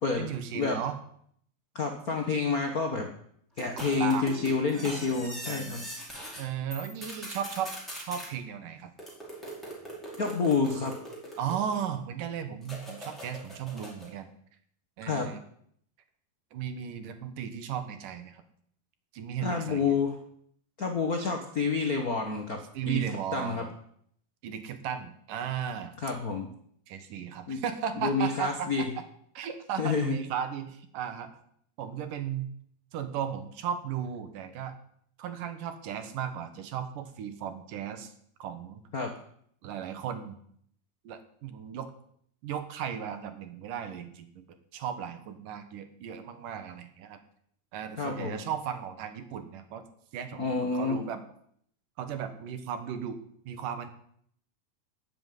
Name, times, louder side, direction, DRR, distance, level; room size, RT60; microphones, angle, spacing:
voice 1, 0.1-1.0 3.8-4.4 4.7-5.9 6.4-8.9 11.4-14.3 15.0-15.4 16.5-18.4 19.1-19.9 22.7-23.7 24.4-25.9 26.9-28.7 29.3-31.4 31.8-32.5 32.9-34.8 35.2-38.1 38.4-38.8 39.6-40.4 41.0-41.9 42.4-44.5 44.7-47.2 47.7-49.8 50.1-51.2 52.0-53.2 53.5-53.9, right 8 dB, 70° right, 9 dB, 2.8 m, -36 dB
voice 2, 1.7-3.1 3.6-5.8 10.2-11.0 15.1-15.3 19.4-20.1 20.8-23.0 23.3-23.7 26.0-26.5 27.5-27.6 28.0-28.9 29.8-30.2 38.9-39.1 48.0-48.4 50.4-51.0, left 4 dB, 60° left, 3 dB, 0.9 m, -28 dB
sound 1, 3.6-6.4 6.7-8.3 9.0-12.0 12.6-14.1, right 1 dB, ahead, 5.0 m, -41 dB
13.0 x 7.8 x 9.2 m, 0.66 s
omnidirectional pair, 4.1 m